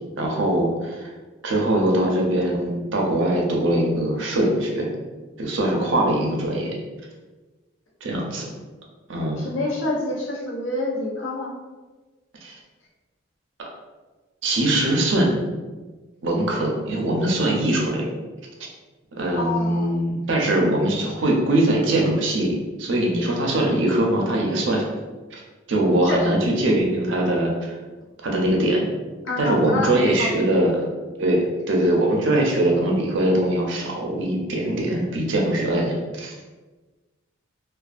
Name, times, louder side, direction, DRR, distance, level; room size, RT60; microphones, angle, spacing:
voice 1, 0.2-1.1 1.4-4.9 5.4-6.7 8.0-8.5 9.1-9.4 12.4-12.6 14.4-15.4 16.2-18.1 18.6-18.7 19.1-24.9 25.3-25.4 25.7-27.8 28.2-28.8 29.4-30.8 31.2-36.3, right 1 dB, 65° right, -1 dB, 0.5 m, -22 dB
voice 2, 5.7-6.1 9.4-11.5 19.4-20.0 26.0-26.4 29.2-29.9 30.2-30.6, left 2 dB, 65° left, -4 dB, 0.6 m, -28 dB
2.4 x 2.3 x 2.4 m, 1.3 s
head